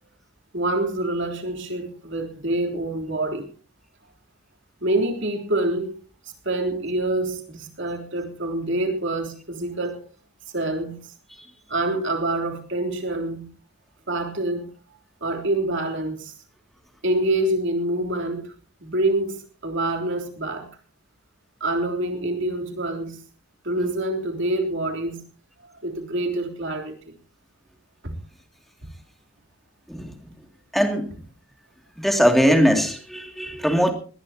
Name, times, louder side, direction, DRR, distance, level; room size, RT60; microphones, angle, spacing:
voice 1, 0.5-3.5 4.8-5.9 6.4-10.0 10.5-11.1 11.7-13.4 14.1-14.7 15.2-16.3 17.0-18.5 18.8-20.7 21.6-23.2 23.6-25.2 25.6-26.9 28.0-28.1, right 1 dB, 55° right, 3 dB, 3.5 m, -26 dB
voice 2, 30.7-31.1 32.0-33.9, equal, ahead, 4 dB, 2.5 m, -20 dB
20.0 x 19.5 x 2.9 m, 0.39 s
head